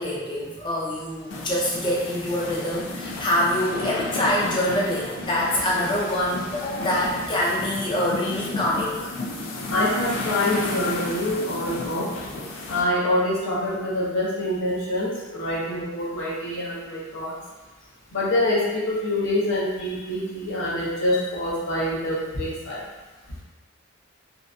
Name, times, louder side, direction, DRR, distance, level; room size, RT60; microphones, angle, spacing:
voice 1, 0.0-9.3, left 1 dB, 25° left, -5 dB, 0.5 m, -25 dB
sound 1, 1.3-12.8, left 2 dB, 80° left, 0.4 m, -33 dB
voice 2, 9.7-12.1 12.7-17.3 18.1-22.8, left 1 dB, 65° left, -6 dB, 0.7 m, -25 dB
2.7 x 2.4 x 2.2 m, 1.1 s
head